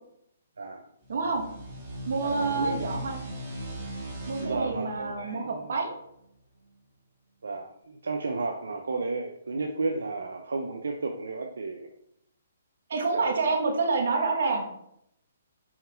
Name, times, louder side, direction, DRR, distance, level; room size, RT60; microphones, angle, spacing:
sound 1, 1.0-6.3, equal, 20° right, 2.0 m, -39 dB
voice 1, 1.1-1.4 2.1-3.2 4.3-5.9 12.9-14.6, right 3 dB, 65° right, 3 dB, 1.6 m, -28 dB
voice 2, 2.2-3.1 4.4-5.7 7.4-11.9 13.1-13.5, right 3 dB, 85° right, 3 dB, 0.7 m, -33 dB
5.7 x 4.6 x 4.4 m, 0.76 s
hypercardioid pair, 150°, 0 cm